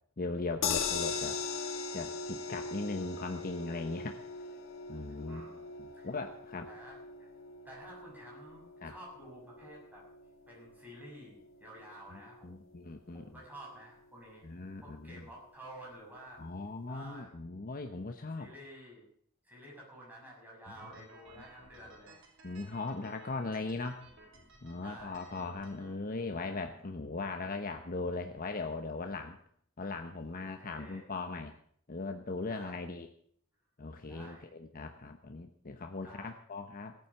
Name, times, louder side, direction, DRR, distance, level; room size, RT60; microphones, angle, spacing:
voice 1, 0.2-1.4 1.9-4.2 4.9-5.5 5.8-6.7 8.8-8.9 12.1-13.2 14.4-15.2 16.4-18.5 22.4-24.0 24.6-29.4 29.8-31.5 31.9-33.1 33.8-36.9, left 3 dB, 45° left, 5 dB, 0.9 m, -39 dB
sound 1, 0.6-12.9 13.2-13.3 13.6-13.7, left 5 dB, 70° left, 1.8 m, -40 dB
voice 2, 5.3-5.7 5.9-6.1 6.7-7.3 7.6-10.1 10.5-12.7 13.1-14.5 14.8-16.4 16.9-17.3 18.3-19.1 19.4-22.2 22.8-23.0 24.8-25.4 30.4-31.1 32.5-32.9 34.1-34.5 36.0-36.3, right 1 dB, 10° right, -3 dB, 6.6 m, -51 dB
sound 2, 20.8-25.9, right 1 dB, 60° right, 3.8 m, -57 dB
16.5 x 9.3 x 7.1 m, 0.64 s
head